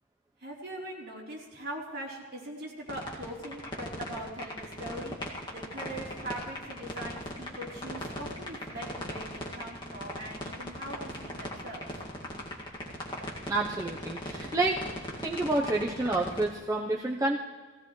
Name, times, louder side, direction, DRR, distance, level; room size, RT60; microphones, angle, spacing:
voice 1, 0.4-5.2 5.5-11.9, right 1 dB, 55° right, -4 dB, 3.6 m, -41 dB
sound 1, 2.9-16.5, left 1 dB, 25° left, 2.1 m, -38 dB
voice 2, 13.5-14.8 15.2-17.4, right 2 dB, 15° right, -2 dB, 0.8 m, -29 dB
18.5 x 16.5 x 3.2 m, 1.4 s
head